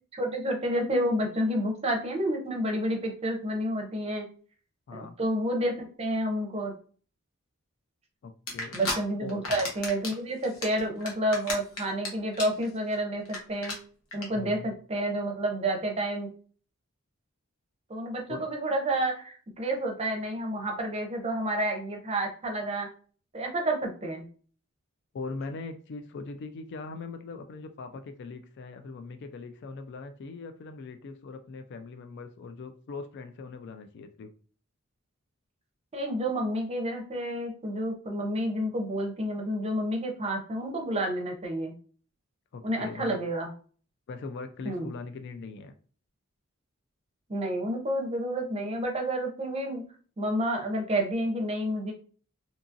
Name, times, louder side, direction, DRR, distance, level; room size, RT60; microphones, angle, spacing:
voice 1, 0.1-4.2 4.9-6.7 8.7-13.7 14.1-16.3 17.9-22.9 23.3-24.3 35.9-41.7 42.6-43.5 44.6-44.9 47.3-49.8 50.2-51.9, right 1 dB, 30° right, 2 dB, 0.6 m, -30 dB
voice 2, 8.2-8.8 9.2-9.4 14.3-14.7 18.3-18.5 25.1-34.3 42.5-43.2 44.1-45.7, left 4 dB, 55° left, 8 dB, 0.3 m, -40 dB
sound 1, 8.5-9.0 9.3-10.1 10.4-12.1 12.3-12.6 12.9-13.0 13.3-13.4 13.6-13.7 14.1-14.2, left 3 dB, 80° left, 0.9 m, -32 dB
2.8 x 2.6 x 2.5 m, 0.41 s
head